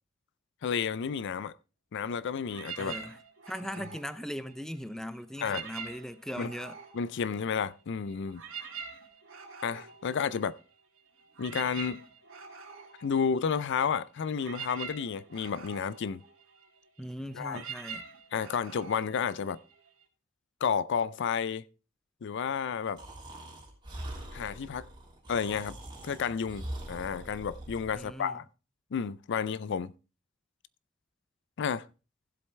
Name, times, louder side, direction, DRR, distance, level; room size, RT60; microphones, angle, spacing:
voice 1, 0.6-1.5 1.9-3.0 5.4-5.6 6.4-6.5 6.9-8.4 9.6-10.5 11.4-12.0 13.0-16.2 17.3-17.6 18.3-19.6 20.6-21.6 22.2-23.0 24.3-24.9 25.3-25.8 26.0-28.4 28.9-29.9 31.6-31.8, left 6 dB, 60° left, 0.4 m, -31 dB
sound 1, 2.5-4.9 5.3-7.8 8.1-20.0, right 6 dB, 75° right, 2.2 m, -45 dB
voice 2, 2.8-3.2 3.5-6.8 17.0-18.0 27.9-28.4, equal, ahead, 0.5 m, -39 dB
Breathing, 23.0-28.1, right 1 dB, 25° right, 3.1 m, -43 dB
16.0 x 7.7 x 3.2 m
head